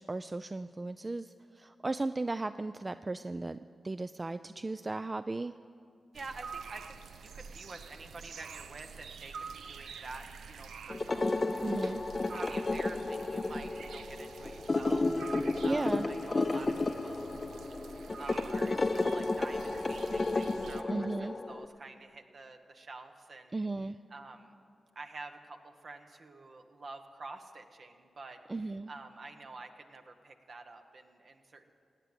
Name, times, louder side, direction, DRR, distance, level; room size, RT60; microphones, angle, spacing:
voice 1, 0.0-3.6 3.8-5.5 11.6-12.0 15.6-16.0 20.9-21.3 23.5-24.0 28.5-28.9, right 2 dB, 30° right, 12 dB, 0.3 m, -35 dB
voice 2, 6.1-11.4 12.2-24.6 24.9-31.7, right 3 dB, 60° right, 6 dB, 1.2 m, -49 dB
sound 1, 6.1-20.8, right 5 dB, 85° right, 0.5 m, -48 dB
sound 2, 10.9-21.7, left 2 dB, 40° left, 0.6 m, -32 dB
17.0 x 9.0 x 8.1 m, 2.4 s
cardioid pair, 45°, 0 cm